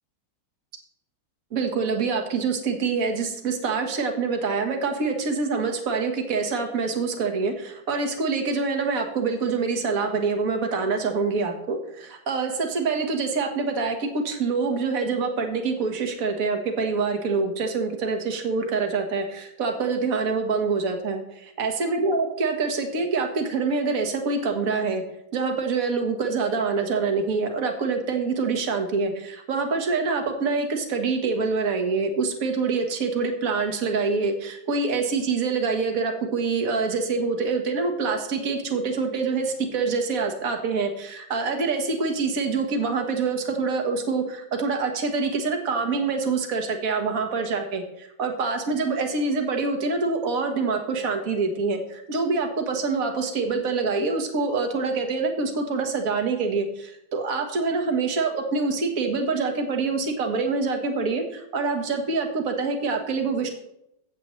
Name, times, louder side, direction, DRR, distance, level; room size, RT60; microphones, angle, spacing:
voice 1, 1.5-25.0 25.3-63.5, right 4 dB, 45° right, 4 dB, 1.7 m, -25 dB
15.5 x 8.1 x 3.2 m, 0.80 s
omnidirectional pair, 2.2 m